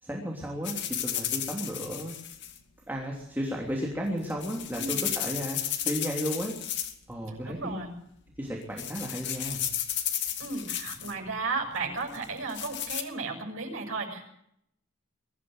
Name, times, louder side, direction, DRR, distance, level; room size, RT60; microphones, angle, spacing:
voice 1, 0.0-0.8 1.0-2.1 2.9-5.6 5.8-6.5 7.1-7.8 8.4-9.6, equal, 10° right, -1 dB, 3.2 m, -33 dB
sound 1, 0.6-2.6 4.1-7.1 7.4-7.8 8.3-8.5 8.8-11.1 12.1-13.0, left 10 dB, 55° left, 2.3 m, -33 dB
voice 2, 7.3-7.9 10.4-14.2, right 3 dB, 75° right, 0 dB, 6.7 m, -34 dB
23.0 x 14.0 x 8.0 m, 0.74 s
head